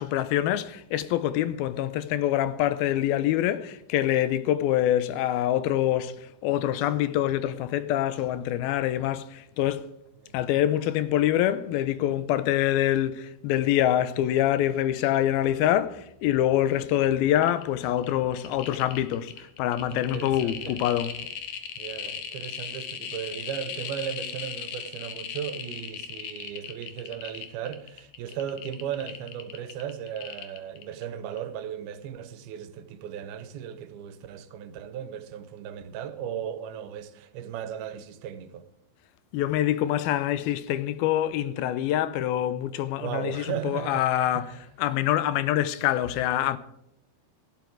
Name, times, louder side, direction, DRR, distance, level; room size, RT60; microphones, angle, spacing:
voice 1, 0.0-9.9 10.3-21.2 39.3-46.6, left 12 dB, 85° left, 2.6 m, -25 dB
sound 1, 17.0-17.1 17.2-17.6 18.0-31.0 31.3-31.4, left 8 dB, 65° left, 2.6 m, -37 dB
voice 2, 19.9-20.8 21.8-38.6 43.0-44.1 44.3-44.6, right 9 dB, 80° right, 2.8 m, -36 dB
14.5 x 12.0 x 4.7 m
omnidirectional pair, 4.3 m